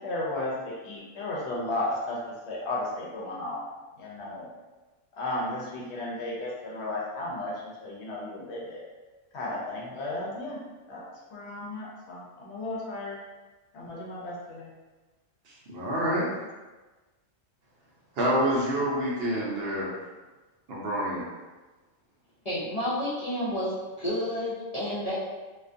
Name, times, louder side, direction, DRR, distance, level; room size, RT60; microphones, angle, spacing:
voice 1, 0.0-2.2 2.5-3.6 4.0-4.5 5.2-7.5 7.8-8.8 9.3-10.6 10.9-11.0 11.3-13.2 13.7-14.7, left 2 dB, 65° left, -4 dB, 0.8 m, -34 dB
voice 2, 15.5-16.3 18.2-19.9 20.7-21.2, equal, 60° right, -5 dB, 0.8 m, -27 dB
voice 3, 22.4-25.2, left 1 dB, 45° left, -11 dB, 0.5 m, -30 dB
2.4 x 2.3 x 2.5 m, 1.2 s
omnidirectional pair, 1.3 m